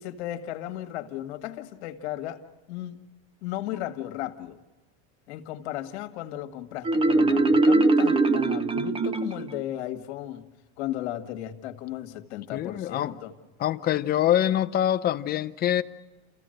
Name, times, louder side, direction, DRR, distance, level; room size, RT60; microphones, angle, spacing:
voice 1, 0.0-2.4 2.7-3.0 3.4-4.6 5.3-10.5 10.8-13.3, left 13 dB, 75° left, 1.8 m, -35 dB
Marimba xylophone, 6.8-9.6, right 2 dB, 15° right, 0.8 m, -21 dB
voice 2, 12.5-13.1 13.6-15.8, left 11 dB, 30° left, 0.7 m, -24 dB
29.0 x 15.0 x 7.8 m
supercardioid pair, 130°, 33 cm